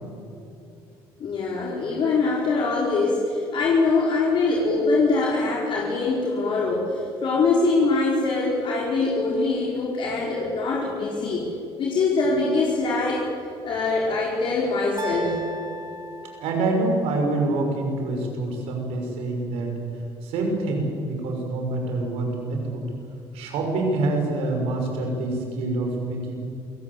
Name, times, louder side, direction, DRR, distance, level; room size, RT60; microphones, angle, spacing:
voice 1, 1.2-11.5 11.8-13.3 13.6-15.4, left 3 dB, 55° left, -4 dB, 4.8 m, -23 dB
sound 1, 15.0-17.1, right 1 dB, 40° right, 5.0 m, -36 dB
voice 2, 16.4-19.8 20.2-22.9 23.3-26.3, right 2 dB, 80° right, 2 dB, 6.4 m, -26 dB
28.0 x 17.5 x 8.4 m, 2.6 s
supercardioid pair, 90°, 10 cm